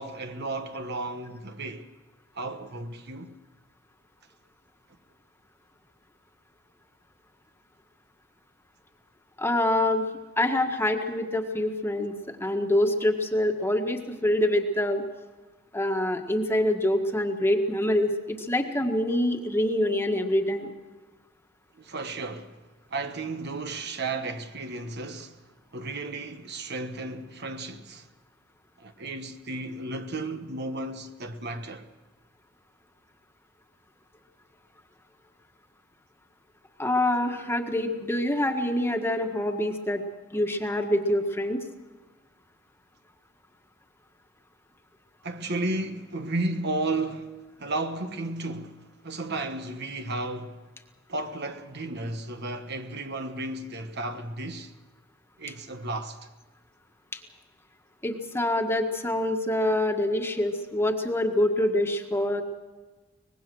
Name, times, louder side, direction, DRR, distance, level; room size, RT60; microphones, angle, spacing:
voice 1, 0.0-1.9 2.3-3.4 21.8-22.6 22.9-25.4 25.7-28.1 28.8-31.9 45.2-50.6 51.1-54.7 55.4-56.2, right 2 dB, 55° right, 1.3 m, -33 dB
voice 2, 9.4-10.0 10.4-12.1 12.4-15.0 15.7-20.7 36.8-40.0 40.3-41.6 57.1-57.2 58.0-62.4, left 1 dB, 10° left, 1.6 m, -25 dB
24.0 x 20.0 x 6.3 m
head